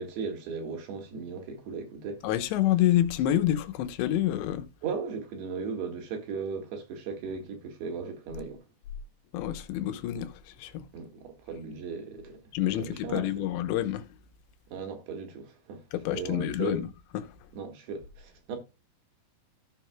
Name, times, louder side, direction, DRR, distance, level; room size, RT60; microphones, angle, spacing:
voice 1, 0.0-2.2 4.8-8.7 10.9-12.4 12.8-13.3 14.7-15.9 16.1-16.8 17.5-18.6, right 5 dB, 65° right, 3.7 m, -37 dB
voice 2, 2.2-4.7 9.3-10.9 12.5-14.0 15.9-16.9 17.1-17.3, left 12 dB, 80° left, 3.0 m, -28 dB
15.0 x 6.2 x 2.3 m
omnidirectional pair, 5.2 m